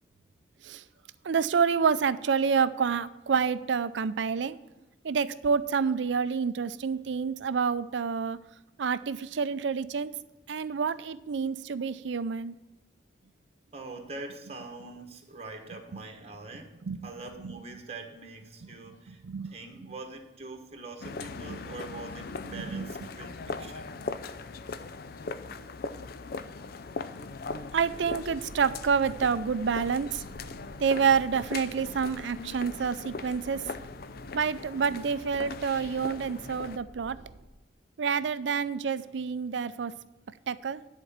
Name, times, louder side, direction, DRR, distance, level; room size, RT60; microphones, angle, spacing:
voice 1, 1.2-4.6 5.0-8.4 8.8-10.1 10.5-12.5 16.9-17.0 17.4-17.5 19.1-19.5 22.5-22.9 27.7-30.2 30.8-33.6 34.3-37.2 38.0-39.9 40.5-40.8, right 6 dB, 80° right, 15 dB, 0.5 m, -28 dB
voice 2, 13.7-16.8 17.0-23.9, right 3 dB, 35° right, 3 dB, 1.2 m, -43 dB
sound 1, 21.0-36.8, left 4 dB, 55° left, 0.5 m, -40 dB
sound 2, 27.4-37.5, right 1 dB, 55° right, 0.9 m, -51 dB
10.5 x 4.4 x 7.3 m, 1.1 s
head